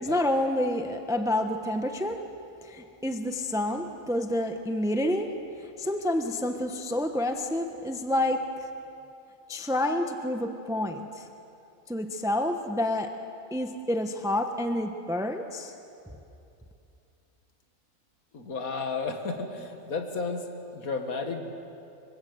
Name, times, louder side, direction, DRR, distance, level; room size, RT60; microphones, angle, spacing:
voice 1, 0.0-2.2 2.7-5.3 5.8-8.4 9.5-11.2 11.9-13.1 13.5-15.7, left 1 dB, 5° right, 5 dB, 1.0 m, -28 dB
voice 2, 18.3-21.5, left 4 dB, 75° left, 4 dB, 2.3 m, -33 dB
24.5 x 24.5 x 8.0 m, 2.7 s
omnidirectional pair, 1.5 m